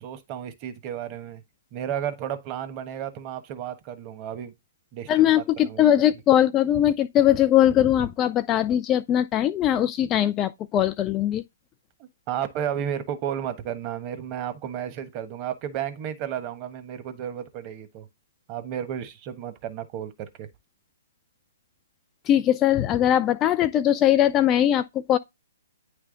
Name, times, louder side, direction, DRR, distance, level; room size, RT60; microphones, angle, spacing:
voice 1, 0.0-1.4 1.7-4.5 4.9-5.9 12.3-18.1 18.5-20.5, right 9 dB, 30° right, 1.2 m, -33 dB
voice 2, 5.1-11.4 22.3-25.2, left 11 dB, 25° left, 0.4 m, -21 dB
9.5 x 3.4 x 3.8 m
figure-of-eight pair, 130°, 0 cm